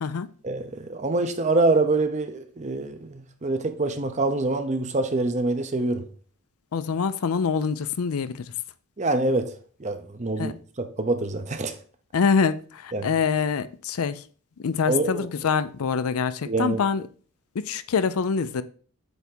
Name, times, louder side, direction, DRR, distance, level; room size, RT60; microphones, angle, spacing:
voice 1, 0.4-6.0 9.0-9.5 9.8-11.7 12.9-13.1 14.9-15.3 16.5-16.8, right 2 dB, 30° right, 0.7 m, -25 dB
voice 2, 6.7-8.5 10.4-10.5 12.1-14.2 14.6-17.1 17.5-18.6, left 5 dB, 70° left, 0.5 m, -25 dB
8.1 x 3.5 x 4.4 m
head